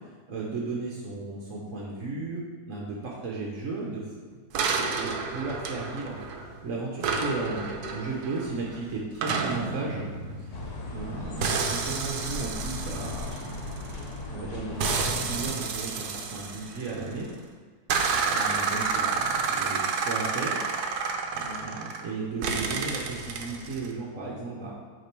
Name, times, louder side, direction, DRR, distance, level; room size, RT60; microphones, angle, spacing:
voice 1, 0.3-4.1 4.4-4.5 4.9-6.2 6.6-10.1 10.9-13.8 14.3-17.3 18.3-20.6 21.3-24.7, right 3 dB, 55° right, -3 dB, 1.2 m, -35 dB
sound 1, 4.5-6.6 7.0-11.0 11.4-14.2 14.8-17.2 17.9-22.1 22.4-23.9, right 5 dB, 75° right, 1.2 m, -30 dB
sound 2, 10.5-15.5, left 2 dB, 70° left, 1.5 m, -37 dB
8.6 x 3.4 x 4.5 m, 1.5 s
omnidirectional pair, 1.7 m